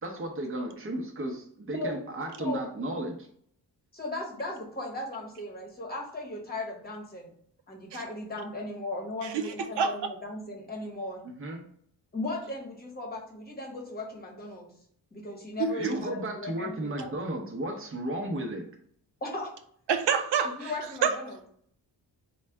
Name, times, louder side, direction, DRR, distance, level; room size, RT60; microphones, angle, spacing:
voice 1, 0.0-3.3 11.2-11.6 15.7-18.6, right 1 dB, 30° right, 2 dB, 0.8 m, -34 dB
voice 2, 3.9-7.3 7.7-11.2 12.1-14.7 15.1-17.1 19.2-19.5 20.4-21.4, left 2 dB, 20° left, 0 dB, 1.0 m, -37 dB
voice 3, 9.2-9.9 15.6-15.9 19.9-20.7 21.0-21.1, right 6 dB, 80° right, 6 dB, 0.6 m, -27 dB
3.9 x 2.2 x 4.5 m, 0.63 s
wide cardioid pair, 170°, 42 cm